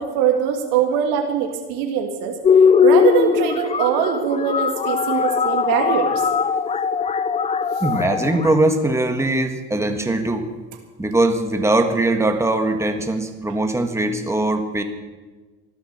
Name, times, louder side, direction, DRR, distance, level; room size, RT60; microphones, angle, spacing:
voice 1, 0.0-2.4 2.8-6.2, right 8 dB, 85° right, 3 dB, 1.8 m, -22 dB
sound 1, 2.4-8.6, left 6 dB, 20° left, 0.5 m, -19 dB
voice 2, 7.8-10.4 11.0-14.8, right 2 dB, 10° right, 5 dB, 1.6 m, -21 dB
14.5 x 12.0 x 6.7 m, 1.3 s
cardioid pair, 105°, 31 cm